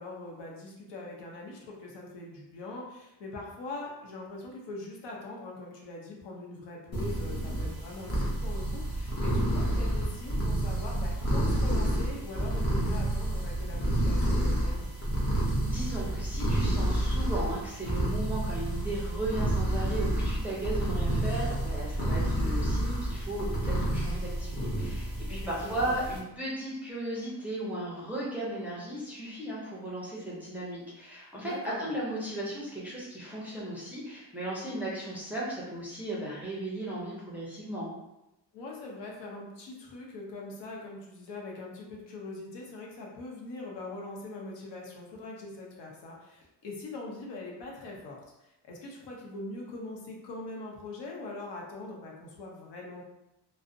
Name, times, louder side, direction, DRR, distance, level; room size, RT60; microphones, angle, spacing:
voice 1, 0.0-14.9 25.3-25.9 31.4-31.9 38.5-53.0, left 2 dB, 80° left, -1 dB, 0.7 m, -42 dB
sound 1, 6.9-26.2, right 1 dB, 35° left, 0.7 m, -29 dB
voice 2, 15.6-37.9, right 1 dB, 5° right, -7 dB, 0.5 m, -36 dB
2.5 x 2.0 x 2.5 m, 0.90 s
cardioid pair, 155°, 41 cm